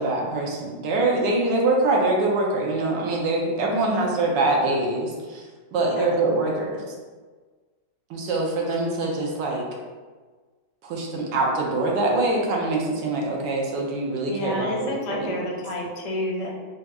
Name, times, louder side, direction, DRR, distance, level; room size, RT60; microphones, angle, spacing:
voice 1, 0.0-5.4 5.7-6.9 8.1-9.7 10.8-15.4, right 2 dB, 85° right, -1 dB, 1.3 m, -24 dB
voice 2, 3.7-4.1 6.0-6.1 14.3-16.5, left 1 dB, 75° left, -2 dB, 1.2 m, -29 dB
4.2 x 2.4 x 2.3 m, 1.4 s
omnidirectional pair, 1.9 m